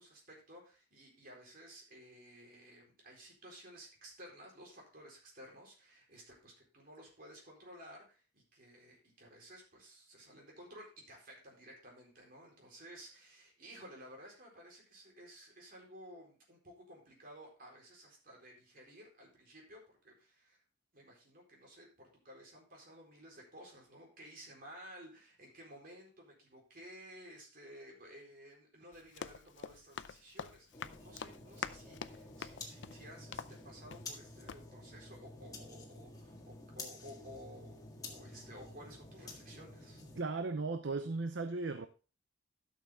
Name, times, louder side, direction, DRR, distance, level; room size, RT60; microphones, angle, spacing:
voice 1, 0.0-20.6 20.9-40.0, equal, 50° right, 4.2 m, -55 dB
Run, 28.9-34.2 34.5-34.6, left 6 dB, 70° left, 0.5 m, -46 dB
sound 1, 30.7-40.2, left 2 dB, 20° left, 1.7 m, -51 dB
voice 2, 40.2-41.9, right 3 dB, 65° right, 0.7 m, -36 dB
12.0 x 6.7 x 3.6 m
head